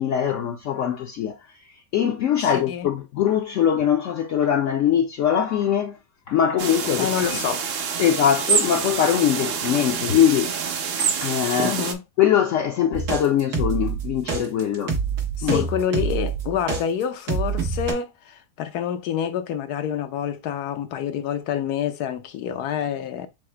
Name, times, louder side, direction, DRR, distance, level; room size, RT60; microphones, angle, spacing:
voice 1, 0.0-1.4 1.9-6.0 6.3-7.1 8.0-10.6 11.0-11.8 12.2-14.9 15.4-15.7, left 9 dB, 65° left, 0.8 m, -22 dB
voice 2, 2.4-2.9 7.0-7.7 11.6-12.0 15.4-23.3, left 8 dB, 85° left, 1.2 m, -27 dB
sound 1, 6.6-11.9, right 6 dB, 60° right, 0.6 m, -26 dB
sound 2, 12.9-16.8 17.3-17.9, right 5 dB, 85° right, 1.9 m, -26 dB
4.9 x 2.0 x 4.3 m
omnidirectional pair, 1.6 m